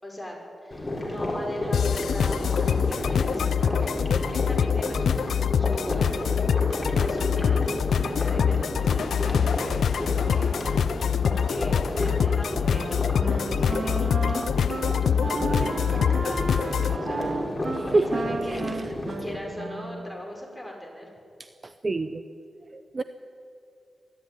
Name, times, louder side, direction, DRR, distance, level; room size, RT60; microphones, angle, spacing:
voice 1, 0.0-4.0 4.3-5.1 5.6-6.2 6.7-10.6 10.9-14.5 15.0-17.3 17.9-18.8 19.2-21.1, left 1 dB, ahead, 0 dB, 5.6 m, -39 dB
sound 1, 0.7-19.4, left 1 dB, 15° left, 4.6 m, -32 dB
sound 2, 1.7-17.0, left 7 dB, 85° left, 0.4 m, -25 dB
Wind instrument woodwind instrument, 12.7-20.2, right 3 dB, 50° right, 1.7 m, -34 dB
voice 2, 17.7-18.2 18.5-19.2 21.4-22.2 22.7-23.0, right 2 dB, 35° right, 10 dB, 0.7 m, -28 dB
22.5 x 13.0 x 9.5 m, 2.6 s
wide cardioid pair, 90°, 0 cm